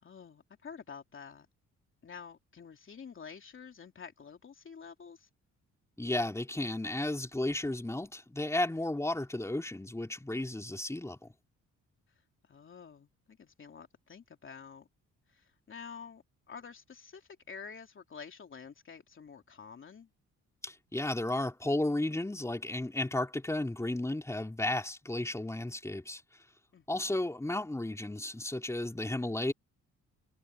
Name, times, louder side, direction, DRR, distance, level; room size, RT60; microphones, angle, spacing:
voice 1, 0.0-1.5 2.0-5.3 12.5-14.9 15.3-20.1 26.7-27.1, left 6 dB, 40° left, 3.1 m, -49 dB
voice 2, 6.0-11.3 20.6-26.2 26.9-29.5, left 1 dB, 10° left, 3.9 m, -33 dB
cardioid pair, 90°, 30 cm